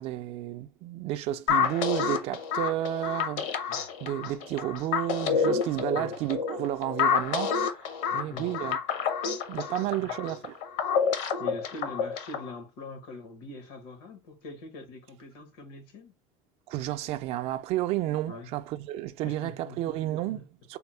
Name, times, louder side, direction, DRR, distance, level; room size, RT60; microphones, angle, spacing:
voice 1, 0.0-8.8 9.5-10.6 16.7-20.8, right 14 dB, 55° right, 0.4 m, -32 dB
sound 1, 1.5-12.5, left 6 dB, 65° left, 0.7 m, -29 dB
voice 2, 8.1-8.5 9.6-10.1 11.4-16.1 18.3-18.5 19.2-20.5, left 2 dB, 90° left, 1.2 m, -43 dB
3.5 x 2.0 x 4.3 m
cardioid pair, 145°, 13 cm